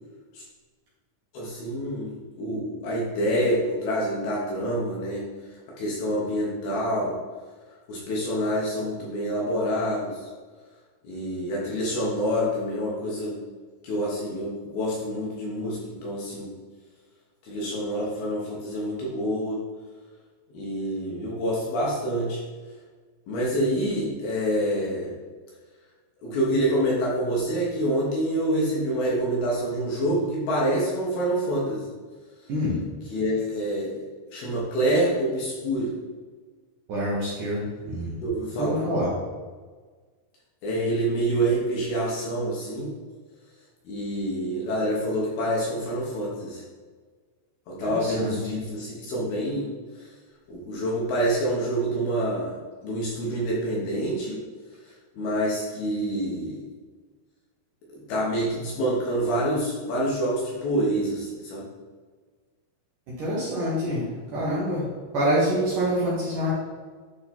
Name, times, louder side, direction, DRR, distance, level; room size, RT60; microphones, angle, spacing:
voice 1, 1.3-5.2 5.8-7.2 7.9-10.3 11.0-13.4 13.8-16.5 17.5-19.6 20.5-22.4 23.3-25.1 26.2-31.9 33.1-34.0 34.3-35.9 37.8-37.9 38.2-38.8 40.6-43.0 43.9-46.6 47.7-49.7 50.0-50.1 50.5-52.6 52.8-54.4 55.1-56.6 58.1-61.6, right 1 dB, 70° left, -4 dB, 2.7 m, -27 dB
voice 2, 32.5-32.8 36.9-38.2 38.6-39.1 47.8-48.4 63.2-64.9 65.1-66.5, equal, 60° right, -7 dB, 2.3 m, -26 dB
10.5 x 3.8 x 4.2 m, 1.5 s
omnidirectional pair, 5.5 m